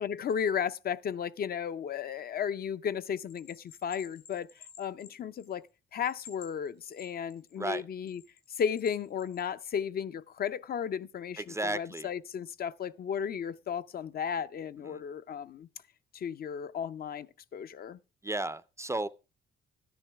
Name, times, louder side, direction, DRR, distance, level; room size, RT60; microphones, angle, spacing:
voice 1, 0.0-4.5 4.8-5.6 5.9-8.2 8.6-15.7 16.1-17.3 17.5-18.0, left 7 dB, 50° left, 0.5 m, -34 dB
Bell, 3.3-5.7 6.0-7.6 8.1-9.4, left 7 dB, 85° left, 4.0 m, -53 dB
voice 2, 11.4-12.1 14.8-15.0 18.2-19.1, right 2 dB, 15° right, 0.4 m, -34 dB
12.5 x 10.5 x 3.4 m
cardioid pair, 90°, 20 cm